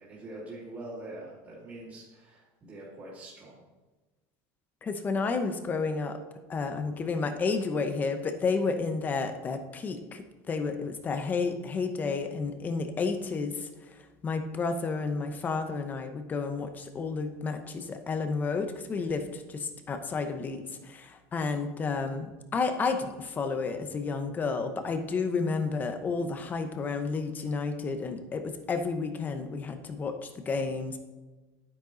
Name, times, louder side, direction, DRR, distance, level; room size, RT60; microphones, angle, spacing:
voice 1, 0.0-3.6, right 2 dB, 25° right, -8 dB, 2.9 m, -44 dB
voice 2, 4.8-6.2 6.5-13.7 14.2-31.0, left 4 dB, 20° left, 7 dB, 0.9 m, -31 dB
11.0 x 9.9 x 4.0 m, 1.2 s
cardioid pair, 175°, 10 cm